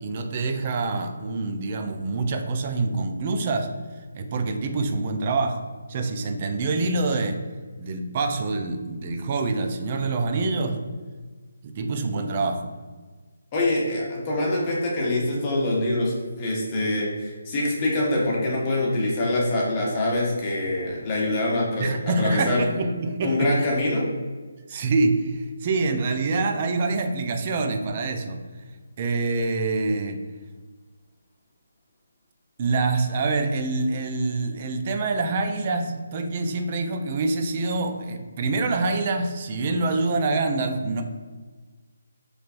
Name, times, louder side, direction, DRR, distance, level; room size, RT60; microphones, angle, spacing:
voice 1, 0.0-3.7 4.1-7.3 7.8-10.8 11.6-12.7 21.8-23.5 24.7-28.4 29.0-30.2 32.6-41.0, right 3 dB, 35° right, 5 dB, 0.4 m, -26 dB
voice 2, 13.5-21.9 22.2-22.6 23.2-24.1, left 1 dB, 25° left, -4 dB, 1.0 m, -24 dB
3.1 x 3.1 x 2.5 m, 1.4 s
figure-of-eight pair, 150°, 0 cm